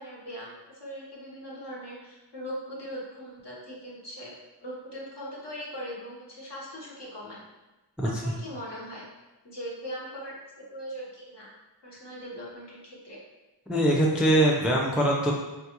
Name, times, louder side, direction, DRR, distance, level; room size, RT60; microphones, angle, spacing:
voice 1, 0.0-4.3 4.6-7.4 8.0-9.1 9.4-10.4 10.7-11.5 11.8-13.2, equal, 60° left, -5 dB, 1.0 m, -40 dB
voice 2, 8.0-8.3 13.7-15.3, right 1 dB, ahead, -2 dB, 0.4 m, -23 dB
3.7 x 2.3 x 2.9 m, 1.1 s
wide cardioid pair, 55°, 46 cm